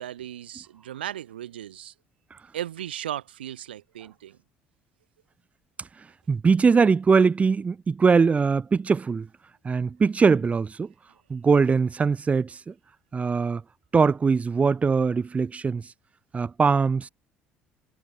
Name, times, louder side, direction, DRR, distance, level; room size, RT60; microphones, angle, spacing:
voice 1, 0.0-1.9 2.5-4.4, right 11 dB, 80° right, 1.4 m, -36 dB
voice 2, 6.3-9.3 9.6-10.9 11.3-12.7 13.1-13.6 13.9-15.8 16.3-17.1, right 5 dB, 25° right, 0.5 m, -21 dB
figure-of-eight pair, 55°, 5 cm